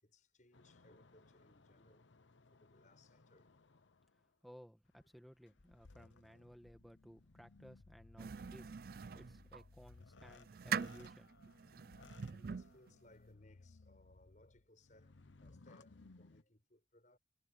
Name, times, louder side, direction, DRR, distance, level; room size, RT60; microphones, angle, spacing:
voice 1, 0.0-2.1 2.5-3.5 12.3-17.2, left 1 dB, 40° left, 7.7 m, -67 dB
sound 1, 0.5-4.3 4.9-16.4, left 3 dB, 85° left, 0.9 m, -62 dB
voice 2, 4.4-11.4, equal, ahead, 1.6 m, -59 dB
sound 2, 8.2-9.6 10.2-12.9, right 6 dB, 50° right, 0.4 m, -43 dB
head